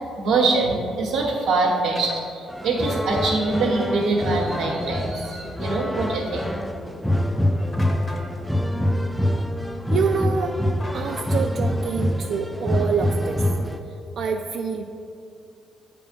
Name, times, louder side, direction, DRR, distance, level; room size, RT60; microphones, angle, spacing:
voice 1, 0.2-6.5, right 3 dB, 85° right, -2 dB, 0.9 m, -23 dB
sound 1, 2.0-2.2 4.4-4.8 7.7-8.3 10.8-11.6, left 1 dB, 30° left, 0.9 m, -38 dB
sound 2, 2.5-13.8, left 1 dB, 5° left, 0.4 m, -25 dB
voice 2, 9.9-10.6 10.9-13.4 14.2-15.0, right 6 dB, 65° right, 3 dB, 0.4 m, -26 dB
8.6 x 3.3 x 5.2 m, 2.5 s
cardioid pair, 90°, 0 cm